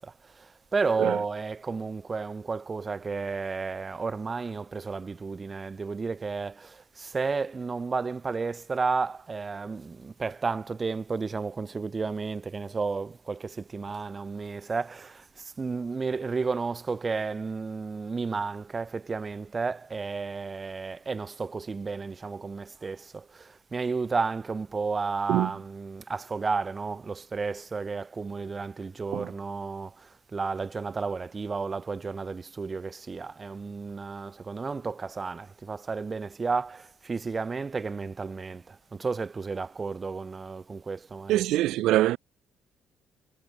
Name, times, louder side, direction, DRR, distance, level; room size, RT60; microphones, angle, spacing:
voice 1, 0.0-41.4, right 4 dB, 25° right, 1.5 m, -32 dB
voice 2, 41.3-42.2, right 15 dB, 85° right, 0.7 m, -24 dB
cardioid pair, 115°, 0 cm